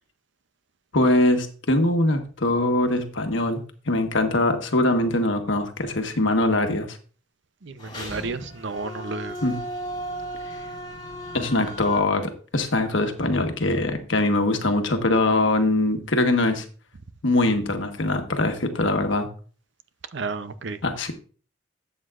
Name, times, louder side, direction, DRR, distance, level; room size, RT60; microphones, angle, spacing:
voice 1, 0.9-7.0 9.4-9.6 11.3-16.6 17.2-19.3 20.8-21.1, left 2 dB, 70° left, 1.3 m, -22 dB
voice 2, 7.6-9.4 20.1-20.8, right 3 dB, 60° right, 0.6 m, -32 dB
sound 1, 7.8-12.0, right 1 dB, 25° left, 4.4 m, -36 dB
12.5 x 7.9 x 2.5 m
head